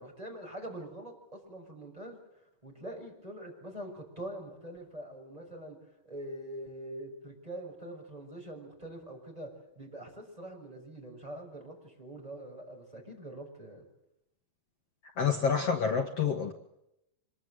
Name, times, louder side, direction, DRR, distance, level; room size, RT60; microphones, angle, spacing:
voice 1, 0.0-2.2 2.6-13.8, right 1 dB, 10° right, 1 dB, 6.1 m, -44 dB
voice 2, 15.2-16.5, left 6 dB, 55° left, 4 dB, 1.9 m, -28 dB
26.0 x 23.0 x 7.9 m, 0.83 s
omnidirectional pair, 4.4 m